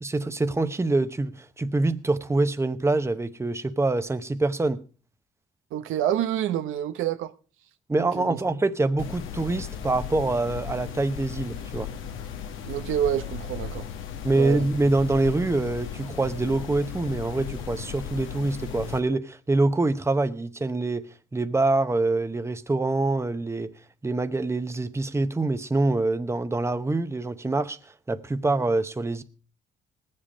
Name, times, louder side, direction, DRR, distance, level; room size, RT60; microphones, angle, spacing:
voice 1, 0.0-4.8 7.9-11.9 14.2-23.7 24.0-27.8 28.1-29.2, right 2 dB, 15° right, 0.8 m, -25 dB
voice 2, 5.7-7.3 8.0-8.4 12.6-13.9 14.4-14.6, right 11 dB, 90° right, 0.8 m, -28 dB
sound 1, 9.0-19.0, left 8 dB, 85° left, 1.3 m, -36 dB
19.0 x 7.7 x 5.0 m
cardioid pair, 90°, 20 cm